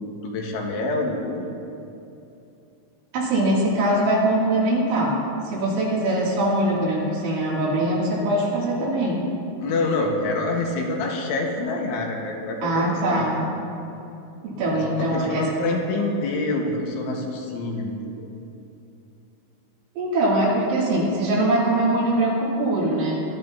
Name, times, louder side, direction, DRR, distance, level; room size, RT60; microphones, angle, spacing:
voice 1, 0.0-1.6 9.6-13.5 14.7-18.3, left 2 dB, 75° left, 0 dB, 3.7 m, -27 dB
voice 2, 3.1-5.2 5.5-9.2 12.6-13.4 14.4-15.4 20.0-23.1, right 1 dB, 70° right, -6 dB, 4.9 m, -22 dB
22.0 x 13.0 x 2.8 m, 2.8 s
omnidirectional pair, 5.9 m